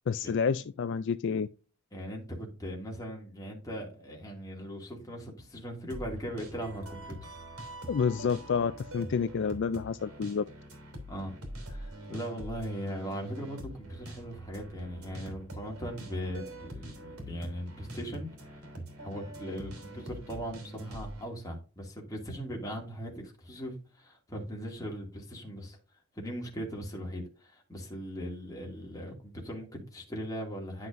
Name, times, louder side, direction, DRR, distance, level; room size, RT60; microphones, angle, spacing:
voice 1, 0.1-1.5 7.9-10.4, left 6 dB, 55° left, 0.3 m, -29 dB
voice 2, 1.9-7.3 11.1-18.3 19.0-25.8 26.2-30.9, equal, 15° left, 2.3 m, -39 dB
sound 1, 5.9-21.3, right 1 dB, 80° right, 3.0 m, -44 dB
11.0 x 5.8 x 2.6 m
head